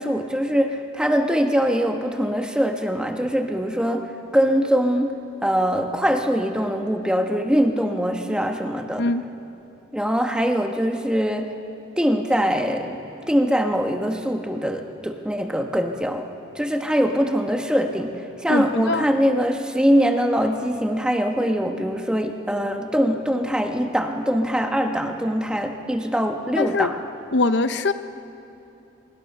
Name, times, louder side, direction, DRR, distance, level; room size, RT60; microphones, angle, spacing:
voice 1, 0.0-4.1 4.3-5.1 5.4-9.0 9.9-11.5 12.0-13.0 13.3-16.3 16.5-18.1 18.4-26.9, equal, 5° right, 4 dB, 1.2 m, -22 dB
voice 2, 18.5-19.0 26.6-26.9 27.3-27.9, left 3 dB, 60° left, 11 dB, 0.6 m, -22 dB
24.0 x 23.5 x 6.7 m, 2.8 s
head